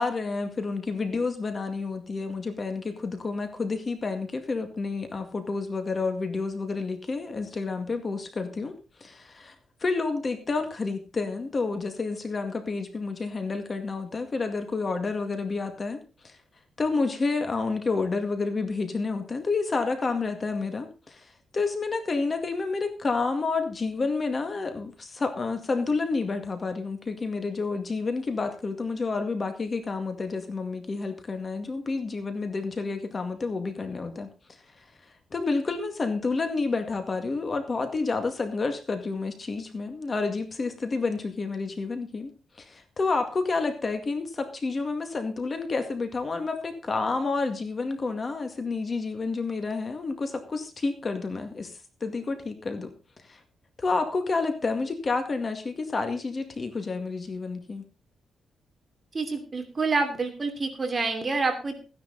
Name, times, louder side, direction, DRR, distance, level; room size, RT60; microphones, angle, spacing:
voice 1, 0.0-8.7 9.0-9.5 9.8-16.4 16.8-34.3 35.3-42.3 42.6-51.7 52.0-52.9 53.2-53.4 53.8-57.8, left 3 dB, 35° left, 7 dB, 2.1 m, -29 dB
voice 2, 59.1-61.8, right 3 dB, 30° right, 5 dB, 2.8 m, -27 dB
15.0 x 10.5 x 4.1 m, 0.32 s
cardioid pair, 120°, 0 cm